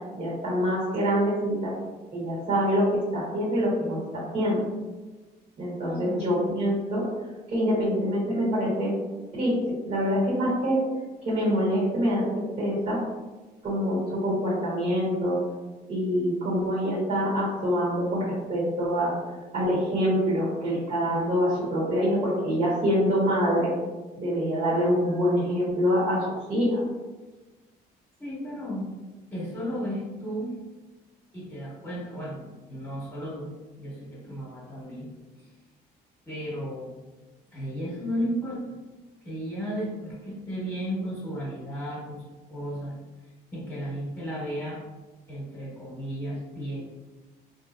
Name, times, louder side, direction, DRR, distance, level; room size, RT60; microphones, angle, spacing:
voice 1, 0.1-1.7 2.1-4.6 5.6-7.0 7.5-8.9 9.3-10.8 11.2-13.0 13.6-15.4 15.9-19.1 19.5-23.7 24.2-26.8, equal, 45° right, -9 dB, 1.4 m, -25 dB
voice 2, 5.8-6.4 28.2-28.9 29.3-30.6 31.3-33.5 33.8-35.1 35.4-35.5 36.3-36.9 37.5-38.6 39.2-42.2 42.5-43.0 43.5-44.8 45.3-46.8, equal, 15° left, -6 dB, 1.3 m, -34 dB
3.7 x 2.8 x 2.6 m, 1.2 s
cardioid pair, 110°, 17 cm